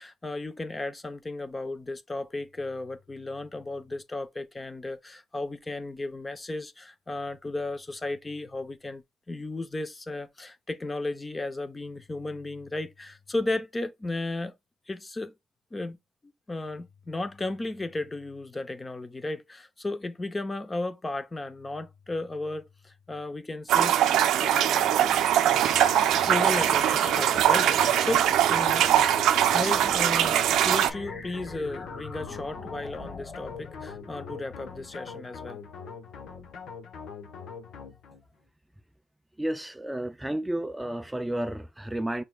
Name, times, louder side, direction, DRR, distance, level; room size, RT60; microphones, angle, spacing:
voice 1, 0.0-14.5 14.9-15.3 15.7-16.0 16.5-23.9 24.4-25.1 26.3-28.9 29.5-35.6, left 2 dB, 20° left, 0.7 m, -34 dB
sound 1, 23.7-30.9, right 11 dB, 85° right, 0.5 m, -22 dB
sound 2, 25.1-38.3, left 5 dB, 75° left, 1.0 m, -43 dB
sound 3, 25.4-34.9, left 3 dB, 40° left, 1.3 m, -43 dB
voice 2, 39.4-42.2, right 1 dB, 10° right, 0.3 m, -31 dB
5.9 x 3.4 x 2.3 m
cardioid pair, 90°, 0 cm